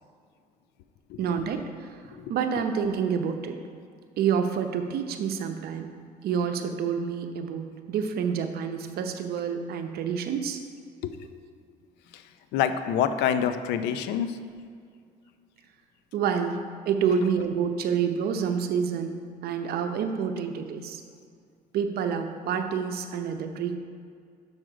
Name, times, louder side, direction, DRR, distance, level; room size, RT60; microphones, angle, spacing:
voice 1, 1.2-1.9 2.3-3.6 4.2-5.9 6.2-10.6 16.1-19.2 19.4-21.0 21.7-23.8, right 7 dB, 65° right, 6 dB, 0.7 m, -28 dB
voice 2, 12.5-14.4, left 8 dB, 85° left, 10 dB, 0.5 m, -27 dB
6.3 x 6.3 x 5.0 m, 2.2 s
cardioid pair, 110°, 17 cm